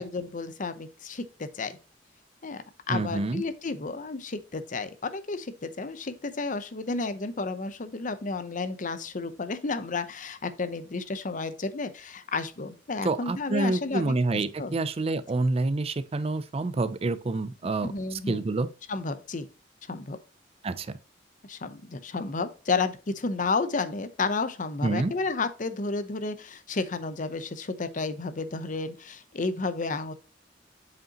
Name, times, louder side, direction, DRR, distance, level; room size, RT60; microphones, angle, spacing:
voice 1, 0.0-1.8 2.4-14.8 17.6-18.4 18.9-19.5 19.9-20.2 21.5-30.1, left 3 dB, 45° left, 0.7 m, -32 dB
voice 2, 2.9-3.4 13.0-18.7 20.6-21.0 24.8-25.1, right 3 dB, 35° right, 0.4 m, -28 dB
7.4 x 5.2 x 2.9 m
head